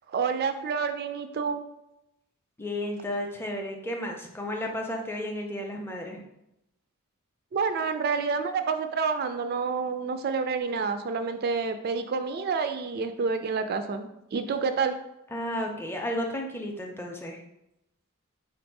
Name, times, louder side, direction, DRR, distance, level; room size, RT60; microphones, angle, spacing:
voice 1, 0.1-1.6 7.5-14.9, right 5 dB, 45° right, 8 dB, 0.3 m, -28 dB
voice 2, 2.6-6.2 15.3-17.4, left 1 dB, 10° left, 1 dB, 0.5 m, -33 dB
4.2 x 2.6 x 4.6 m, 0.86 s
head